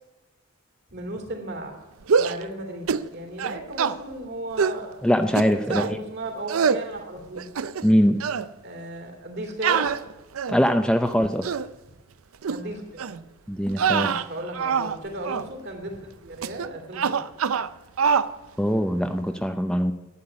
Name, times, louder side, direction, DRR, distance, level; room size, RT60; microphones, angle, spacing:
voice 1, 0.9-1.8 2.2-5.0 5.5-7.5 8.6-9.9 12.5-13.1 13.9-17.1, right 1 dB, 50° right, 3 dB, 3.0 m, -35 dB
sound 1, 2.0-2.4 2.9-3.1 3.4-4.0 4.6-4.8 5.4-5.9 6.5-6.8 7.4-7.9 8.2-8.5 9.6-10.7 11.2-11.7 12.4-12.6 13.0-13.2 13.7-15.0 15.2-15.5 16.4-16.7 16.9-17.7 18.0-18.3, right 6 dB, 80° right, 0.5 m, -24 dB
voice 2, 5.0-6.0 7.8-8.2 10.5-11.5 13.5-14.1 18.6-19.9, equal, 5° left, 6 dB, 0.5 m, -22 dB
11.5 x 8.7 x 9.8 m, 1.1 s
head